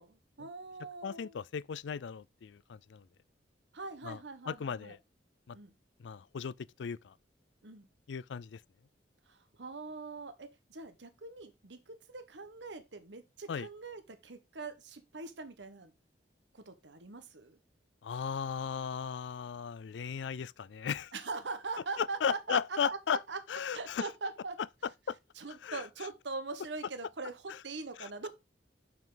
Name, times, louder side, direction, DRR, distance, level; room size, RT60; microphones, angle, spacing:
voice 1, 0.0-1.3 3.7-4.9 5.5-5.7 7.6-7.9 9.3-15.9 16.5-17.6 21.1-23.4 23.7-24.6 25.4-28.3, right 3 dB, 85° right, 1.1 m, -42 dB
voice 2, 1.0-3.0 4.0-4.2 4.5-5.0 5.5-5.6 6.0-6.5 6.8-7.1 8.1-8.6 13.5-13.7 18.0-21.1 22.0-23.2 23.5-24.1 25.1-25.2 25.6-25.8 27.5-27.6 28.0-28.1, left 7 dB, 85° left, 0.4 m, -36 dB
6.9 x 6.1 x 3.8 m
head